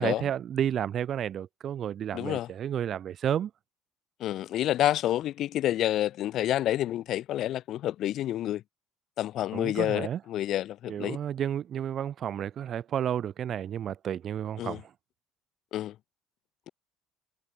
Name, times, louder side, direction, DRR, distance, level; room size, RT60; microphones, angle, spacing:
voice 1, 0.0-3.5 9.5-10.2 10.9-14.9, right 9 dB, 35° right, 0.5 m, -31 dB
voice 2, 2.1-2.5 4.2-8.6 9.2-11.2 14.6-14.8 15.7-15.9, left 13 dB, 45° left, 0.5 m, -28 dB
cardioid pair, 165°, 0 cm